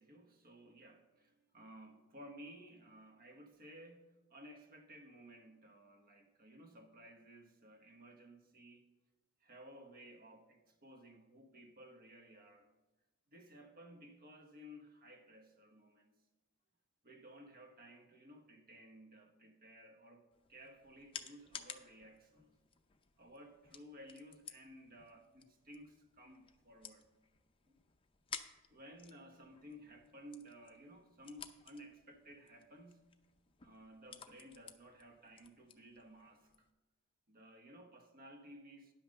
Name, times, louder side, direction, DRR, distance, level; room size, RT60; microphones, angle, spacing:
voice 1, 0.0-8.8 9.4-12.7 13.3-16.1 17.0-20.2 20.5-22.5 23.2-27.1 27.7-27.8 28.7-33.1 33.6-36.7 37.3-38.9, equal, 40° right, 1.1 m, -56 dB
sound 1, 20.3-36.7, left 7 dB, 25° left, 0.5 m, -55 dB
10.5 x 5.7 x 6.4 m
head